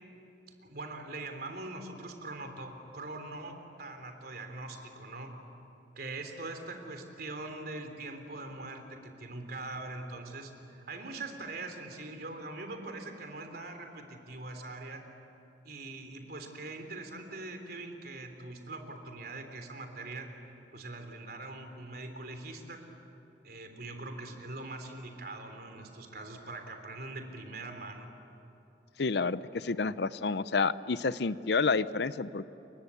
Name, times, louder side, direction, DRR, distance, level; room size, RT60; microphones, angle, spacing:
voice 1, 0.6-5.4 5.9-15.0 15.6-20.3 20.7-22.8 23.4-28.1, right 2 dB, 60° right, 5 dB, 3.4 m, -42 dB
voice 2, 29.0-32.4, left 4 dB, 65° left, 15 dB, 0.6 m, -29 dB
30.0 x 23.5 x 8.3 m, 2.9 s
head